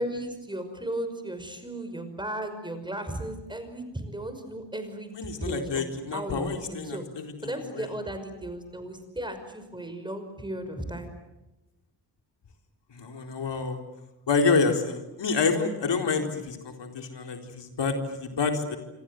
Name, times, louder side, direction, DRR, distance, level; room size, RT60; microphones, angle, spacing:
voice 1, 0.0-7.0 7.4-11.1, right 1 dB, 10° right, 8 dB, 5.6 m, -35 dB
voice 2, 5.2-7.0 7.7-7.8 12.9-13.8 14.3-18.8, left 4 dB, 80° left, 4 dB, 4.2 m, -27 dB
27.0 x 26.5 x 7.9 m, 1.0 s
wide cardioid pair, 110°, 42 cm